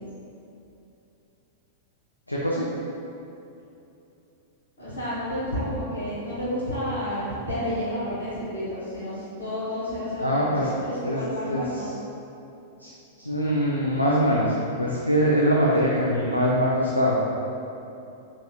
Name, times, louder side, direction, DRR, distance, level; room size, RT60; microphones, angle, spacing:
voice 1, 2.3-2.6 10.2-10.7 11.0-11.6 12.8-12.9 13.2-17.2, equal, 85° left, -5 dB, 0.4 m, -23 dB
voice 2, 4.8-11.9, equal, 65° left, -13 dB, 1.4 m, -30 dB
6.6 x 2.8 x 2.4 m, 2.9 s
figure-of-eight pair, 95°, 0 cm